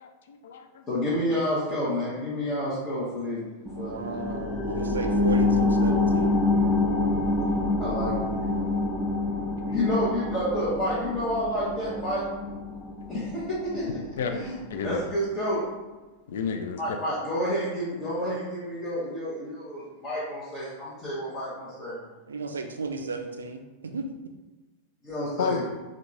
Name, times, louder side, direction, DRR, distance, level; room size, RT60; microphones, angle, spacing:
voice 1, 0.0-0.9 7.6-8.0 8.6-9.8 14.2-14.3 14.7-15.0 16.3-17.0 25.4-25.6, left 5 dB, 60° left, 6 dB, 0.3 m, -33 dB
voice 2, 0.9-3.4 3.8-4.1 7.8-8.2 9.7-12.3 13.1-14.0 14.3-14.5 14.8-15.7 16.8-22.0 25.0-25.6, equal, 30° left, -10 dB, 1.0 m, -29 dB
sound 1, 3.7-14.8 15.2-15.3, left 2 dB, 10° left, 0.5 m, -27 dB
voice 3, 3.8-6.3 22.3-24.1, right 3 dB, 70° right, 5 dB, 0.3 m, -35 dB
3.5 x 2.3 x 3.0 m, 1.2 s
figure-of-eight pair, 90°, 0 cm